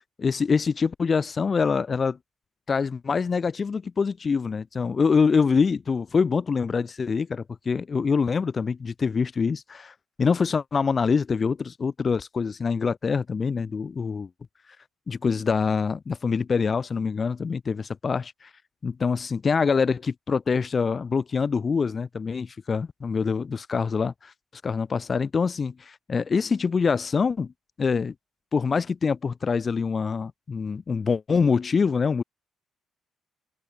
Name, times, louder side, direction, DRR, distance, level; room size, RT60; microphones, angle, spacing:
voice 1, 0.2-2.2 2.7-14.3 15.1-18.5 18.8-24.3 24.6-27.5 27.8-28.1 28.5-32.2, left 5 dB, 40° left, 0.7 m, -25 dB
cardioid pair, 90°, 0 cm